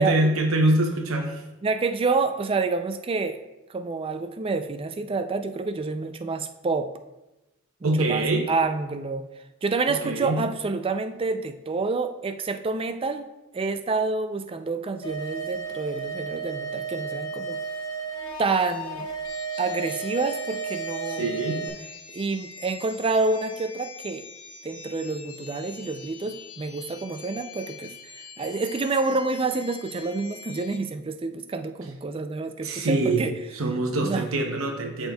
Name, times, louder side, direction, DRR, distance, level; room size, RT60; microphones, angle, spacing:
voice 1, 0.0-1.4 7.8-8.5 10.0-10.4 21.1-21.6 32.6-33.3 33.5-35.1, right 2 dB, 75° right, 2 dB, 0.8 m, -24 dB
voice 2, 1.6-3.4 3.7-6.9 7.8-9.2 9.6-13.2 13.5-17.6 18.4-19.1 19.6-21.7 22.1-24.2 24.6-33.3 34.0-34.3, right 3 dB, 25° right, 9 dB, 0.4 m, -28 dB
sound 1, 15.0-21.7, right 4 dB, 45° left, 1.5 m, -33 dB
sound 2, 19.2-30.8, left 5 dB, 85° left, 0.9 m, -44 dB
13.0 x 4.3 x 2.3 m, 1.0 s
head